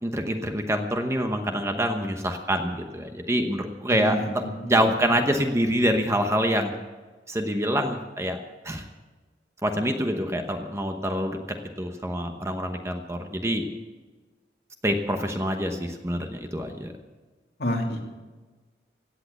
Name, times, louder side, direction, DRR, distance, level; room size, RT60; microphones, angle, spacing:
voice 1, 0.0-4.2 4.6-6.7 7.3-8.4 8.6-8.8 9.6-11.4 11.8-13.7 14.8-16.9, equal, 15° right, 5 dB, 1.0 m, -26 dB
voice 2, 3.9-4.9 17.6-18.0, left 1 dB, 60° left, 0 dB, 2.9 m, -29 dB
16.5 x 8.7 x 8.2 m, 1.3 s
head